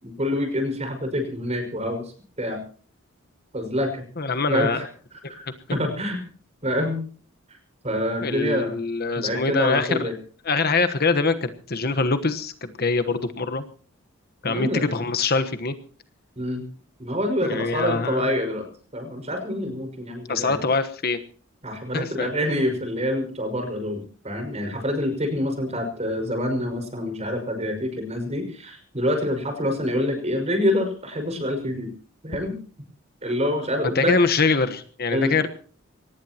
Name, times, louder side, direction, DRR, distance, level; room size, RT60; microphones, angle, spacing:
voice 1, 0.0-2.1 2.4-2.6 3.5-4.1 4.5-6.2 6.6-7.0 7.8-8.8 9.2-10.2 14.4-15.0 16.4-16.7 17.0-20.7 21.6-31.9 32.2-32.6 33.2-34.2 35.1-35.4, left 1 dB, 30° right, 6 dB, 5.6 m, -26 dB
voice 2, 4.2-4.8 8.2-10.1 10.4-13.7 14.4-15.7 17.4-18.3 20.3-21.2 21.9-22.3 33.8-35.5, left 4 dB, 50° left, 9 dB, 1.2 m, -24 dB
23.5 x 19.0 x 3.0 m, 0.42 s
head